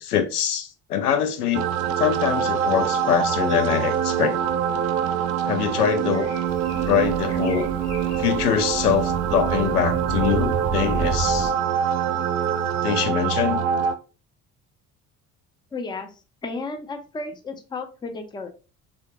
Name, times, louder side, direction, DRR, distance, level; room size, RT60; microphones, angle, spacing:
voice 1, 0.0-1.7 2.0-4.4 5.5-6.3 6.9-7.7 8.2-11.5 12.8-13.6, left 9 dB, 80° left, 0.5 m, -23 dB
sound 1, 1.5-14.0, right 8 dB, 65° right, 0.5 m, -24 dB
sound 2, 3.5-9.1, left 4 dB, 35° left, 0.9 m, -46 dB
sound 3, 6.5-11.5, right 4 dB, 25° right, 0.7 m, -31 dB
voice 2, 15.7-16.1 16.4-18.5, left 3 dB, 10° left, 0.4 m, -33 dB
3.5 x 2.2 x 2.6 m
figure-of-eight pair, 55°, 45 cm